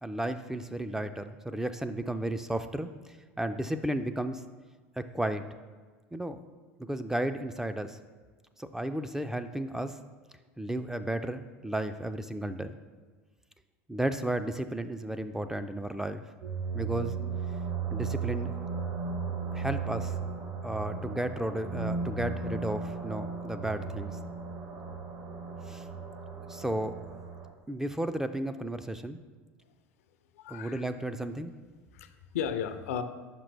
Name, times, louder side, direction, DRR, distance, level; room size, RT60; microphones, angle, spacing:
voice 1, 0.0-2.9 3.4-4.4 5.0-5.4 6.1-6.4 6.8-8.0 8.6-10.0 10.6-12.8 13.9-16.2 16.7-17.1 17.9-18.5 19.5-20.2 20.6-24.2 25.7-25.8 26.5-26.9 27.7-29.2 30.5-31.5, right 1 dB, 5° right, 9 dB, 0.3 m, -33 dB
sound 1, 16.4-27.5, right 5 dB, 55° right, 1.2 m, -35 dB
voice 2, 30.4-30.8 31.9-33.0, left 8 dB, 75° left, 10 dB, 0.4 m, -34 dB
5.7 x 5.1 x 3.3 m, 1.4 s
hypercardioid pair, 80°, 8 cm